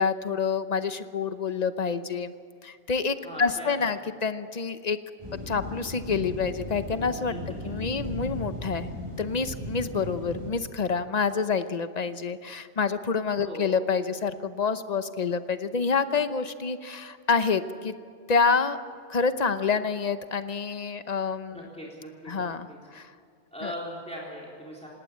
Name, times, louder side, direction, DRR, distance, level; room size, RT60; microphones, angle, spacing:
voice 1, 0.0-2.3 2.6-5.0 5.5-7.3 7.6-8.9 9.2-17.9 18.3-18.8 19.1-21.7 22.3-23.1 23.6-23.7, left 5 dB, 40° left, 11 dB, 0.9 m, -27 dB
voice 2, 3.2-3.7 7.3-7.9 13.4-13.7 21.5-22.5 23.5-24.9, equal, 5° left, -4 dB, 3.7 m, -40 dB
sound 1, 5.2-10.5, equal, 25° right, 5.5 m, -37 dB
19.0 x 18.0 x 8.4 m, 2.3 s
omnidirectional pair, 1.1 m